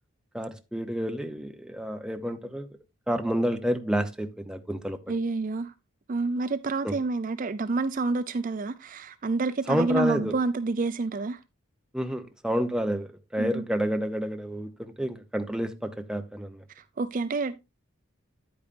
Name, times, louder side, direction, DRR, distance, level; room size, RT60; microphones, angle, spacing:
voice 1, 0.3-2.7 3.1-5.0 6.8-6.9 9.7-10.3 11.9-16.6, equal, 5° right, 0.8 m, -29 dB
voice 2, 5.1-5.7 6.1-11.4 13.4-13.6 16.8-17.6, right 3 dB, 40° right, 0.4 m, -28 dB
9.7 x 8.7 x 2.6 m
head